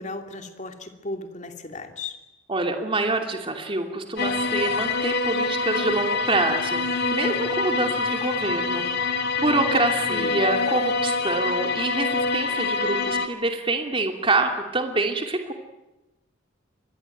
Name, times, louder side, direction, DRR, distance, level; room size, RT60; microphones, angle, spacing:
voice 1, 0.0-2.2 10.1-10.4, left 2 dB, 35° left, 6 dB, 2.8 m, -35 dB
voice 2, 2.5-15.5, right 2 dB, 25° right, 4 dB, 2.7 m, -26 dB
sound 1, 4.2-13.3, left 4 dB, 55° left, 2.1 m, -25 dB
26.0 x 20.5 x 9.2 m, 1.0 s
head